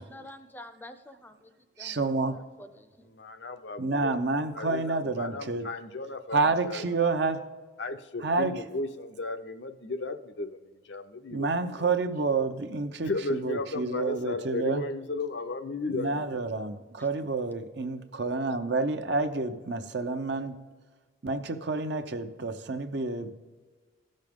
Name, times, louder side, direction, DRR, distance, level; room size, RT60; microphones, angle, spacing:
voice 1, 0.0-1.3 1.8-3.1 17.0-17.1, left 1 dB, 10° left, 0.6 m, -48 dB
voice 2, 1.8-2.5 3.8-5.7 6.3-7.5 8.2-8.5 11.3-14.8 15.9-20.6 21.2-23.3, right 3 dB, 60° right, 0.7 m, -29 dB
voice 3, 3.1-4.1 4.5-6.4 6.6-6.8 7.8-10.6 10.9-11.5 11.8-11.9 13.0-16.4, left 2 dB, 65° left, 0.6 m, -35 dB
15.5 x 6.4 x 3.6 m
head